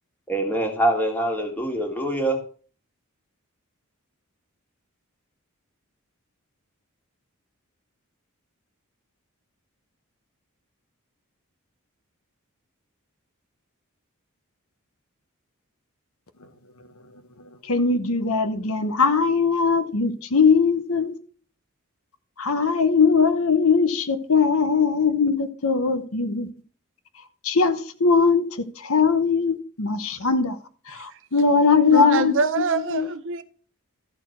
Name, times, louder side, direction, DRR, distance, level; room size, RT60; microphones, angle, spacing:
voice 1, 0.3-2.4, right 1 dB, 10° left, 2.0 m, -24 dB
voice 2, 17.7-21.1 22.4-26.5 27.4-28.5 28.8-30.6 31.0-32.3 32.9-33.1, left 5 dB, 70° left, 1.0 m, -20 dB
voice 3, 31.9-33.4, right 3 dB, 60° right, 0.7 m, -24 dB
13.0 x 4.4 x 5.7 m
head